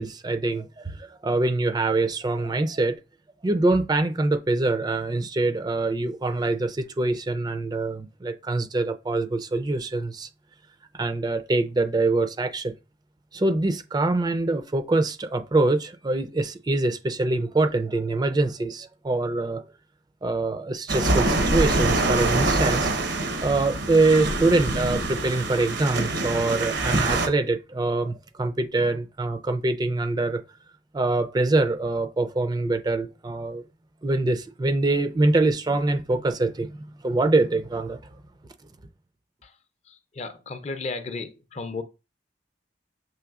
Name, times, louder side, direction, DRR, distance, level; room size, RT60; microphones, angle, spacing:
voice 1, 0.0-3.0 3.4-10.3 10.9-12.7 13.3-19.6 20.2-30.4 30.9-33.6 34.0-36.7 37.0-38.0, right 2 dB, 25° right, 0.4 m, -24 dB
sound 1, 20.9-27.3, right 2 dB, 85° right, 0.9 m, -25 dB
voice 2, 39.9-41.8, left 3 dB, 40° left, 0.5 m, -34 dB
6.9 x 3.2 x 2.4 m
head